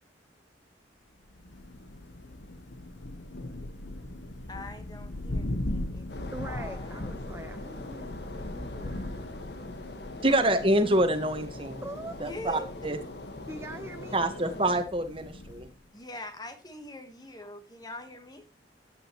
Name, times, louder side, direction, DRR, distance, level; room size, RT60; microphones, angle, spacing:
Thunder, 1.3-15.9, left 1 dB, 80° left, 1.2 m, -39 dB
voice 1, 4.5-7.1 12.2-13.0 15.9-18.5, left 1 dB, 20° left, 1.4 m, -43 dB
sound 1, 6.1-14.8, left 2 dB, 65° left, 1.6 m, -42 dB
voice 2, 6.3-9.3 11.8-12.2 12.5-12.7 13.5-14.2, right 1 dB, 15° right, 0.6 m, -43 dB
voice 3, 10.2-11.8 12.2-13.0 14.1-15.7, right 1 dB, 30° right, 1.5 m, -26 dB
14.0 x 8.9 x 3.1 m
head